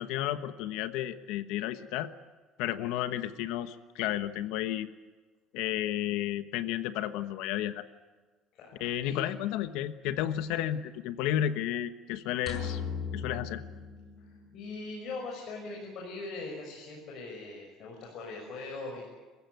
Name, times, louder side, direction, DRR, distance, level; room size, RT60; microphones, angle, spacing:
voice 1, 0.0-2.1 2.6-4.9 5.5-7.8 8.8-12.8 13.1-13.6, left 12 dB, 80° left, 11 dB, 1.2 m, -32 dB
voice 2, 8.5-9.2 14.2-19.0, left 3 dB, 50° left, 0 dB, 6.3 m, -41 dB
sound 1, 12.5-14.7, left 6 dB, 30° left, 6.2 m, -37 dB
29.5 x 16.0 x 9.4 m, 1.4 s
cardioid pair, 160°, 0 cm